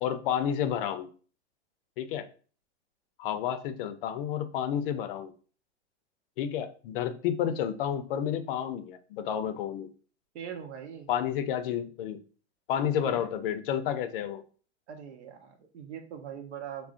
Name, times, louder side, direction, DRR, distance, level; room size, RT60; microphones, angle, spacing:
voice 1, 0.0-1.1 2.0-2.3 3.2-5.3 6.4-9.9 11.1-12.2 12.7-14.4, left 9 dB, 55° left, 10 dB, 0.5 m, -30 dB
voice 2, 10.3-11.1 13.0-13.3 14.9-16.9, right 8 dB, 90° right, 5 dB, 0.8 m, -41 dB
3.7 x 2.0 x 2.4 m, 0.39 s
hypercardioid pair, 130°, 34 cm